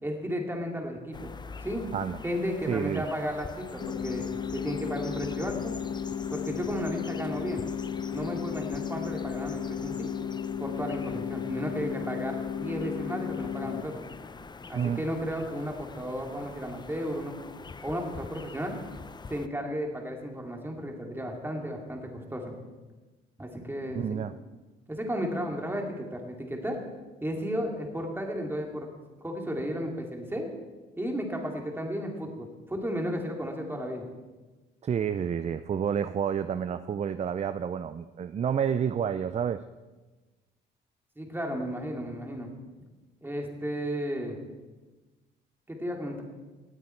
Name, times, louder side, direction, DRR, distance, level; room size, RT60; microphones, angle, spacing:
voice 1, 0.0-1.3 1.6-1.9 2.2-4.3 4.5-5.7 6.3-7.6 8.1-10.1 10.6-14.0 14.7-17.3 17.8-18.8 19.3-22.5 23.4-24.3 24.9-26.8 27.2-28.9 29.2-30.5 31.0-34.0 41.2-42.5 43.2-44.4 45.7-46.2, equal, 10° right, 1 dB, 2.5 m, -34 dB
sound 1, 1.1-19.5, left 4 dB, 20° left, 0.5 m, -45 dB
voice 2, 2.7-3.0 14.7-15.0 24.0-24.3 34.8-39.6, right 8 dB, 35° right, 12 dB, 0.4 m, -29 dB
sound 2, 3.8-13.8, left 8 dB, 55° left, 1.0 m, -34 dB
18.5 x 7.9 x 4.5 m, 1.2 s
cardioid pair, 90°, 20 cm